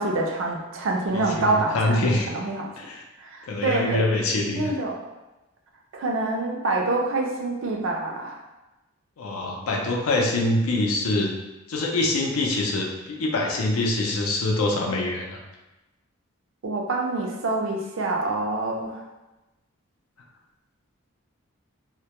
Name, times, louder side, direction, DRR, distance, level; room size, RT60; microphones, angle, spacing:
voice 1, 0.0-2.7 3.2-4.1 4.5-5.0 5.9-8.4 16.6-19.0, right 2 dB, 65° right, 1 dB, 0.4 m, -26 dB
voice 2, 1.1-2.3 2.8-3.0 3.5-4.7 9.2-11.3 11.7-15.4, left 2 dB, 90° left, 0 dB, 0.5 m, -25 dB
2.1 x 2.1 x 2.8 m, 1.0 s
head